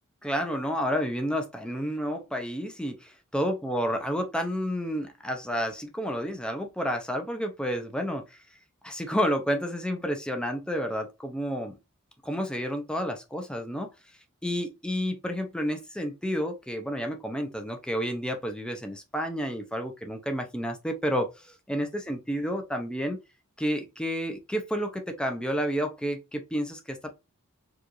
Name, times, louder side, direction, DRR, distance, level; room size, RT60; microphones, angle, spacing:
voice 1, 0.2-8.4 8.8-11.7 12.2-13.9 14.4-23.2 23.6-27.1, equal, 5° left, 0.7 m, -30 dB
4.8 x 2.6 x 3.1 m
head